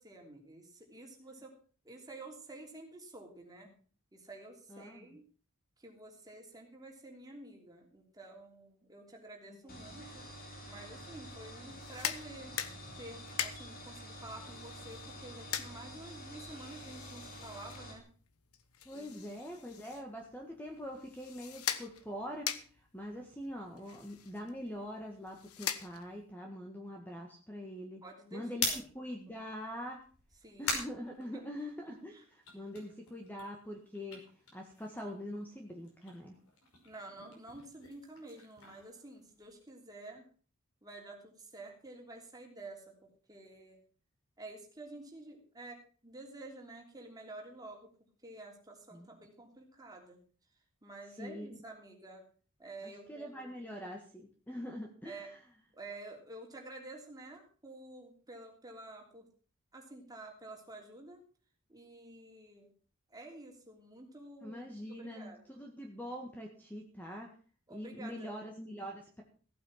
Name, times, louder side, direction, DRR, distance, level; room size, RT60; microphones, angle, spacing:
voice 1, 0.0-1.5 1.8-3.7 4.1-5.2 5.8-10.2 10.7-12.5 13.0-18.0 18.9-19.4 28.0-28.8 30.4-30.8 31.3-31.4 32.1-32.2 36.8-40.3 40.8-43.8 44.4-47.9 48.2-50.2 50.8-52.2 52.6-53.5 55.0-55.3 55.7-59.3 59.7-61.2 61.7-62.7 63.1-64.6 65.0-65.4 67.7-68.4, right 2 dB, 20° right, 1 dB, 3.2 m, -50 dB
voice 2, 4.7-5.1 9.5-9.8 18.8-22.5 22.9-28.0 28.3-28.7 28.9-30.0 30.6-32.2 32.5-34.2 34.5-36.3 48.9-49.1 51.1-51.6 52.8-55.4 64.4-67.3 67.7-69.2, equal, 10° left, 1 dB, 1.7 m, -44 dB
sound 1, 9.7-18.0, equal, 40° left, 3.2 m, -48 dB
sound 2, 11.7-26.3, left 9 dB, 90° left, 1.1 m, -43 dB
sound 3, 28.4-31.9 32.3-35.3 35.6-39.7, left 3 dB, 75° left, 5.4 m, -42 dB
15.5 x 8.7 x 5.8 m, 0.40 s
head